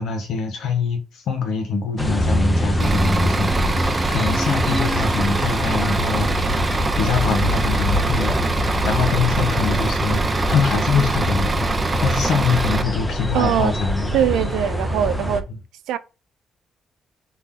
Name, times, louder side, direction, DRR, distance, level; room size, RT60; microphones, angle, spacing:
voice 1, 0.0-6.7 7.0-14.1 15.5-15.6, left 4 dB, 75° left, 1.3 m, -24 dB
sound 1, 2.0-15.4, left 1 dB, 10° left, 0.7 m, -24 dB
Bus / Idling, 2.8-12.8, right 3 dB, 30° right, 0.5 m, -24 dB
voice 2, 13.3-13.8 14.1-15.5 15.9-16.0, right 11 dB, 90° right, 0.4 m, -21 dB
4.0 x 2.9 x 3.8 m
cardioid pair, 90°, 0 cm